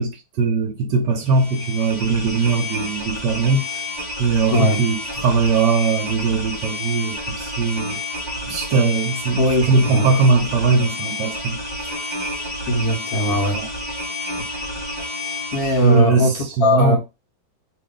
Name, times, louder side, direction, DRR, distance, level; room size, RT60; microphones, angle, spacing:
voice 1, 0.0-3.7 4.2-8.0 8.5-11.6 11.8-12.0 13.5-13.7 15.8-17.0, right 4 dB, 70° right, 1.2 m, -20 dB
sound 1, 1.2-16.0, left 1 dB, 25° right, 1.5 m, -30 dB
voice 2, 9.3-10.1 12.7-13.6 15.5-16.3 16.6-17.0, left 1 dB, 55° left, 1.3 m, -19 dB
3.2 x 2.5 x 3.5 m
omnidirectional pair, 2.1 m